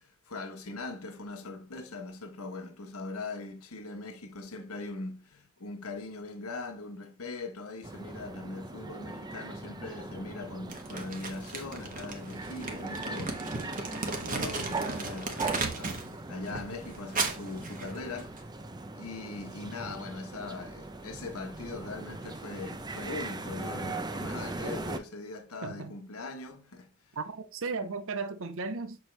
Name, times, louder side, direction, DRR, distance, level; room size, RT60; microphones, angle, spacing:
voice 1, 0.0-18.5 19.0-27.1, left 3 dB, 80° left, 1.2 m, -41 dB
sound 1, 7.8-25.0, right 2 dB, 20° right, 0.6 m, -40 dB
Crumpling crinkling, 10.7-16.1 16.4-18.4, right 3 dB, 40° right, 1.2 m, -36 dB
voice 2, 25.6-25.9 27.2-29.0, right 4 dB, 65° right, 0.7 m, -35 dB
7.1 x 4.5 x 3.3 m
head